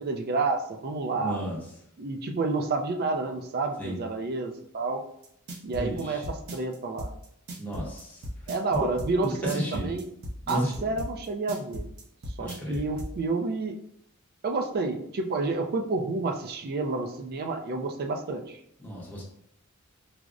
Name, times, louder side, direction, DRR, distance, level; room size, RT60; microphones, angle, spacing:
voice 1, 0.0-1.4 2.0-5.0 5.6-6.2 6.5-7.1 8.5-10.0 10.5-11.9 12.4-13.8 14.4-18.6, right 3 dB, 45° right, 5 dB, 0.4 m, -29 dB
voice 2, 1.2-1.6 3.8-4.0 5.7-6.2 7.6-8.5 9.2-9.9 10.4-10.9 12.4-12.8 18.8-19.2, equal, 5° left, -5 dB, 0.7 m, -33 dB
sound 1, 5.2-13.1, equal, 75° right, 0.7 m, -37 dB
4.7 x 2.0 x 2.4 m, 0.73 s
head